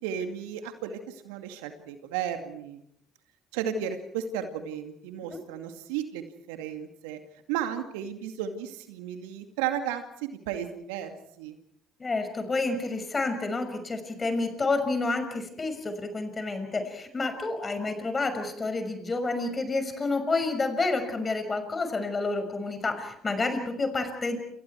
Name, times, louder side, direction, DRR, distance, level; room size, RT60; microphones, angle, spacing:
voice 1, 0.0-2.8 3.5-7.2 7.5-11.1 11.4-11.6, right 9 dB, 75° right, 7 dB, 2.3 m, -34 dB
voice 2, 12.0-24.4, left 3 dB, 30° left, 7 dB, 6.1 m, -29 dB
28.5 x 28.0 x 4.6 m, 0.72 s
hypercardioid pair, 55°, 0 cm